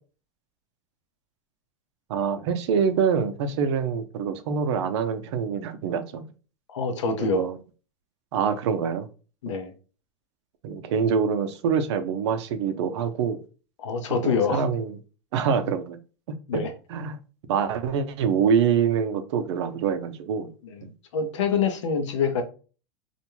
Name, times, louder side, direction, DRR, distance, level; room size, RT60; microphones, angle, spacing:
voice 1, 2.1-6.3 7.2-7.6 8.3-9.1 10.6-13.4 14.2-15.0 15.3-16.0 16.9-17.2 17.5-20.5 20.8-20.9, right 6 dB, 70° right, 0.5 m, -25 dB
voice 2, 6.7-7.5 9.4-9.7 13.8-14.6 16.5-16.7 20.6-22.4, left 5 dB, 90° left, 0.7 m, -26 dB
2.5 x 2.2 x 3.0 m
supercardioid pair, 120°, 15 cm